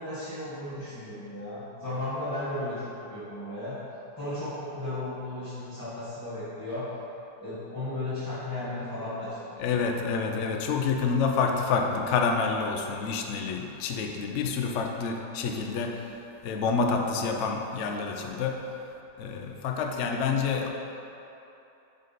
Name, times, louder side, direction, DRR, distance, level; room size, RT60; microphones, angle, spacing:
voice 1, 0.0-3.8 4.2-7.0 7.4-9.6, left 1 dB, 15° left, -13 dB, 1.1 m, -35 dB
voice 2, 9.6-16.2 16.4-18.6 19.2-20.7, left 5 dB, 75° left, 2 dB, 0.6 m, -28 dB
9.4 x 3.9 x 4.0 m, 3.0 s
omnidirectional pair, 2.0 m